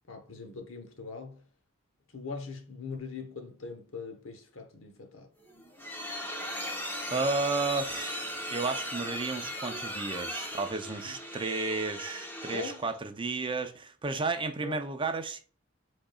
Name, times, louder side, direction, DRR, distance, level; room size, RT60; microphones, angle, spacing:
voice 1, 0.1-1.5 2.1-5.3 11.1-11.2 12.5-12.8 14.6-14.8, left 4 dB, 70° left, 1.0 m, -41 dB
sound 1, 5.4-12.9, equal, 10° left, 0.9 m, -38 dB
voice 2, 7.1-15.4, right 3 dB, 25° right, 0.5 m, -32 dB
5.1 x 3.9 x 2.3 m
head